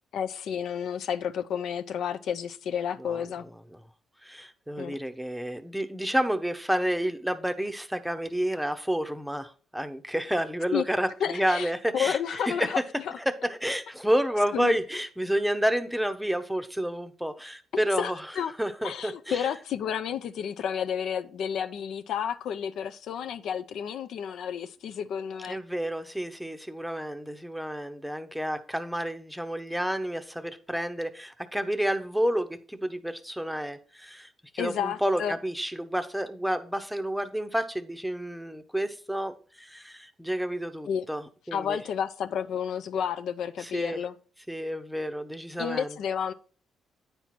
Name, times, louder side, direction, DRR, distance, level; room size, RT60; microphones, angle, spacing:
voice 1, 0.1-3.4 4.8-5.0 10.7-10.8 11.2-12.8 14.5-14.8 18.0-18.5 18.8-25.6 34.6-35.4 40.9-41.1 41.5-44.2 45.6-46.3, left 8 dB, 75° left, 0.4 m, -31 dB
voice 2, 4.2-12.8 13.3-18.2 18.6-19.5 25.5-41.8 43.6-44.0 44.5-46.0, equal, ahead, 0.7 m, -30 dB
9.2 x 4.5 x 4.2 m
cardioid pair, 90°, 0 cm